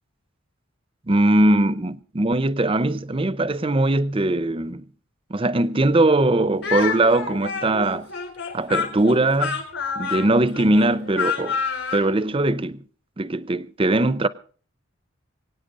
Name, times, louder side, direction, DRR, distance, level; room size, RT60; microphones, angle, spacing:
voice 1, 1.1-4.8 5.3-8.1 8.5-9.6 10.0-11.6 11.9-12.8 13.2-14.3, right 2 dB, 25° right, 0.6 m, -20 dB
Speech, 6.6-12.1, left 6 dB, 60° left, 3.9 m, -28 dB
23.5 x 9.2 x 5.2 m
head